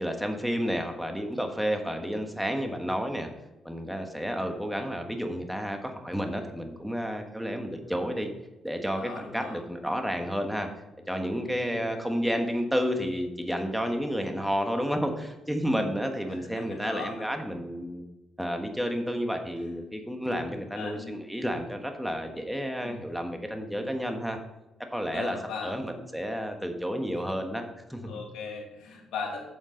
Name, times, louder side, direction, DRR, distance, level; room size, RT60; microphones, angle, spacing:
voice 1, 0.0-3.3 3.6-8.3 8.6-10.7 11.1-18.0 18.4-24.4 24.9-25.4 25.6-27.6 27.9-28.2, equal, ahead, 4 dB, 1.4 m, -31 dB
voice 2, 9.0-9.6 11.4-11.8 16.4-17.3 20.8-21.2 22.8-23.0 25.1-25.7 28.0-29.4, left 5 dB, 85° left, -1 dB, 2.5 m, -38 dB
9.0 x 7.3 x 3.9 m, 0.99 s
cardioid pair, 90°, 0 cm